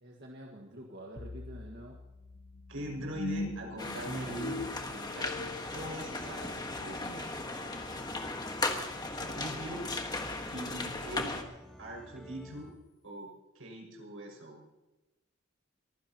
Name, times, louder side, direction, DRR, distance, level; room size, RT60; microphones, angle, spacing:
voice 1, 0.0-2.0, right 1 dB, 55° right, 0 dB, 1.7 m, -48 dB
sound 1, 1.2-10.3, left 2 dB, 55° left, 0.8 m, -44 dB
voice 2, 2.7-6.5 6.8-7.3 9.1-9.9 10.4-11.4 11.8-12.7 13.0-14.6, right 1 dB, 85° right, 0 dB, 6.1 m, -42 dB
sound 2, 3.8-11.4, left 2 dB, 20° left, 1.5 m, -37 dB
sound 3, 4.0-12.7, equal, ahead, 1.6 m, -51 dB
23.0 x 15.5 x 3.0 m, 1.1 s
head